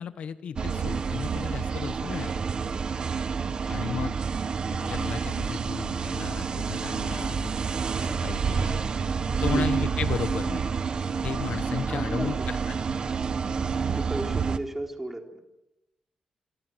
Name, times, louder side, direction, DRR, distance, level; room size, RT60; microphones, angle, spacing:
voice 1, 0.0-2.3 3.7-4.2 4.7-7.5 8.0-8.8 9.4-10.6 11.2-12.8 13.4-13.6, left 7 dB, 75° left, 13 dB, 1.2 m, -34 dB
sound 1, 0.6-14.6, right 5 dB, 45° right, 1.5 m, -29 dB
voice 2, 3.5-3.9 9.4-9.8 11.6-12.5 13.9-15.4, right 1 dB, 10° right, 4 dB, 4.1 m, -36 dB
27.0 x 24.0 x 8.0 m, 0.91 s
wide cardioid pair, 140°, 2 cm